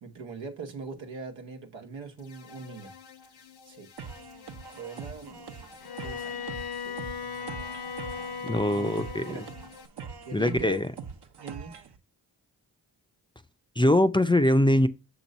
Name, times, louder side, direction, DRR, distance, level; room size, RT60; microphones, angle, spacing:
voice 1, 0.0-2.9 3.7-3.9 4.7-5.5 6.0-6.5 6.8-7.5 8.1-8.9 9.3-9.7 10.2-10.9 11.4-11.8, right 4 dB, 90° right, 1.1 m, -41 dB
sound 1, 2.2-9.9, left 6 dB, 85° left, 1.1 m, -51 dB
sound 2, 4.0-12.0, right 6 dB, 65° right, 1.0 m, -43 dB
Bowed string instrument, 5.8-9.5, left 6 dB, 55° left, 0.9 m, -37 dB
voice 2, 8.5-9.3 10.3-10.8 13.8-14.9, left 1 dB, 10° left, 0.5 m, -22 dB
6.5 x 3.0 x 5.2 m
supercardioid pair, 40°, 44 cm